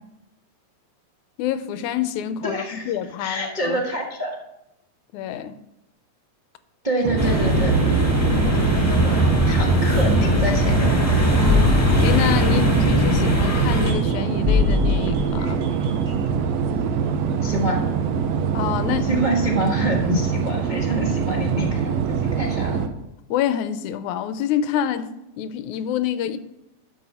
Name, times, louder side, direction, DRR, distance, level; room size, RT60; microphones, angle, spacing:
voice 1, 1.4-3.8 5.1-5.6 11.4-15.6 18.5-19.1 23.3-26.4, left 10 dB, 80° left, 2.0 m, -27 dB
voice 2, 2.4-4.4 6.8-7.7 8.5-11.1 17.4-17.8 19.0-21.9 22.2-22.8, right 1 dB, 55° right, 0.5 m, -26 dB
sound 1, 7.0-22.9, right 6 dB, 75° right, 1.8 m, -24 dB
sound 2, 7.2-13.9, equal, 15° left, 1.9 m, -20 dB
sound 3, 10.4-10.5 11.4-13.1 13.6-16.7 17.5-17.6, left 5 dB, 15° right, 1.2 m, -24 dB
12.5 x 6.2 x 5.5 m
omnidirectional pair, 3.5 m